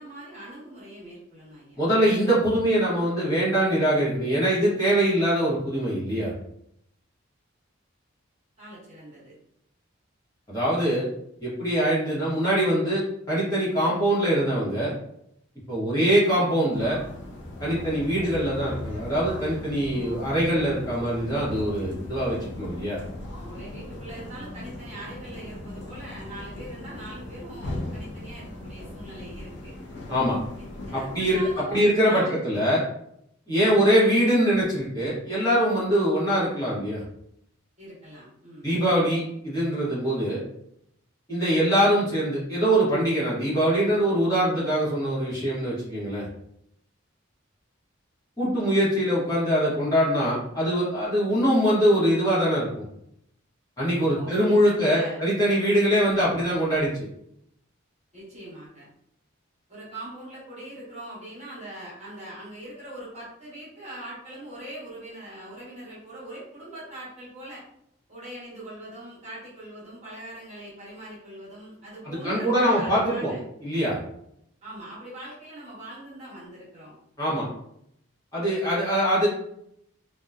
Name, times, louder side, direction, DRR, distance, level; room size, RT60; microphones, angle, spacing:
voice 1, 0.0-1.8 8.6-9.3 23.4-29.7 30.8-32.4 37.8-38.7 54.1-55.2 58.1-58.8 59.7-67.6 68.1-73.4 74.6-76.9, right 1 dB, 35° right, -8 dB, 1.1 m, -41 dB
voice 2, 1.8-6.3 10.5-11.1 11.4-14.9 15.7-17.0 17.6-23.0 30.1-30.4 30.9-31.4 31.7-32.8 33.5-37.0 38.6-40.4 41.3-46.3 48.4-52.8 53.8-57.1 72.0-73.3 73.6-74.0 77.2-77.5 78.3-79.3, equal, 15° left, -10 dB, 1.1 m, -23 dB
sound 1, 16.7-31.6, left 1 dB, 55° left, 0.5 m, -38 dB
2.7 x 2.2 x 2.3 m, 0.76 s
head